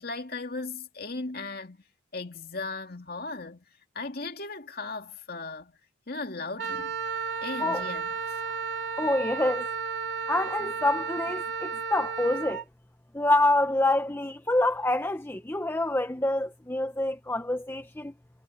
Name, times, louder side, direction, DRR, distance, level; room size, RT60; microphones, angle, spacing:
voice 1, 0.0-1.8 2.1-3.6 3.9-5.7 6.1-6.9 7.4-8.1, left 3 dB, 50° left, 2.4 m, -37 dB
Wind instrument woodwind instrument, 6.6-12.6, right 6 dB, 65° right, 2.2 m, -33 dB
voice 2, 9.0-9.7 10.3-12.6 13.1-18.1, left 2 dB, 10° left, 0.7 m, -26 dB
head